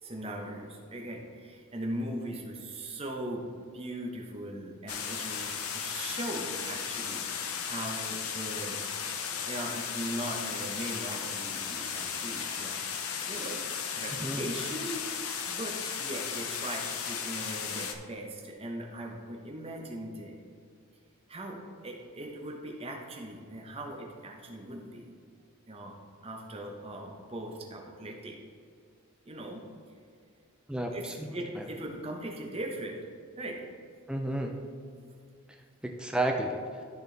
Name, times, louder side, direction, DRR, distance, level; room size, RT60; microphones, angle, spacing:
voice 1, 0.0-3.4 3.7-7.3 7.6-8.8 9.5-12.8 13.3-13.6 13.9-20.3 21.3-25.1 25.7-26.0 26.2-28.3 29.3-29.6 30.9-33.0 33.4-33.6, right 1 dB, 25° right, 0 dB, 1.0 m, -39 dB
sound 1, 4.9-17.9, left 7 dB, 80° left, 0.7 m, -35 dB
voice 2, 30.7-31.3 31.6-31.7 34.1-34.6 35.8-36.6, right 1 dB, 5° right, 2 dB, 0.5 m, -31 dB
13.5 x 4.5 x 3.4 m, 2.2 s
head